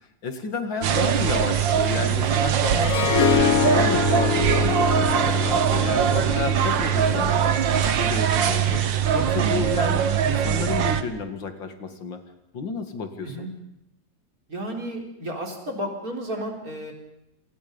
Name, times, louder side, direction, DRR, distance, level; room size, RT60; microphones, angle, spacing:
voice 1, 0.2-3.0 3.3-7.6 8.0-8.8 9.1-12.2 12.5-13.5, left 4 dB, 85° left, 7 dB, 2.9 m, -31 dB
sound 1, 0.8-11.0, right 8 dB, 85° right, 1.9 m, -22 dB
Harp, 2.8-7.9, left 8 dB, 50° left, 1.5 m, -25 dB
voice 2, 14.5-16.9, equal, 50° right, 1 dB, 4.7 m, -32 dB
28.0 x 25.5 x 5.4 m, 0.81 s
omnidirectional pair, 2.0 m